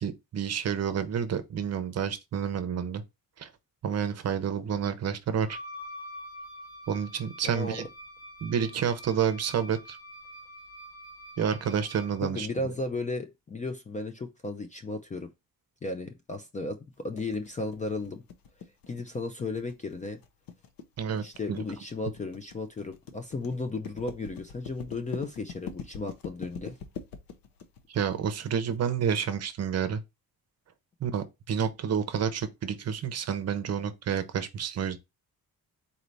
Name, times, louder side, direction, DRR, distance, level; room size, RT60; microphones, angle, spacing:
voice 1, 0.0-3.0 3.4-3.5 3.8-5.6 6.9-7.9 8.4-10.0 11.4-12.5 21.0-21.2 21.5-21.6 27.9-30.0 31.0-35.0, right 7 dB, 45° right, 0.7 m, -29 dB
Wind instrument woodwind instrument, 5.5-12.2, equal, 45° left, 1.4 m, -45 dB
voice 2, 7.4-7.9 12.2-15.3 15.8-18.2 18.9-20.2 21.2-26.8, left 3 dB, 20° left, 0.4 m, -35 dB
sound 1, 17.1-28.7, left 6 dB, 65° left, 0.8 m, -43 dB
4.1 x 3.2 x 3.9 m
wide cardioid pair, 180°, 36 cm